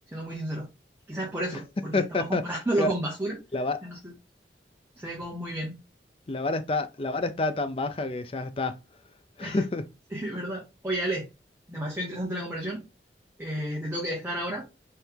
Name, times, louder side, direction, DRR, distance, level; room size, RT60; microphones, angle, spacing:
voice 1, 0.1-0.7 1.1-3.4 3.8-4.1 5.0-5.8 9.4-9.6 10.1-11.3 11.7-12.8 13.4-14.6, right 1 dB, 10° right, 1.1 m, -31 dB
voice 2, 1.9-2.4 2.8-2.9 3.5-3.8 6.3-8.7 9.4-9.8, left 2 dB, 30° left, 0.5 m, -28 dB
4.4 x 3.3 x 3.6 m
head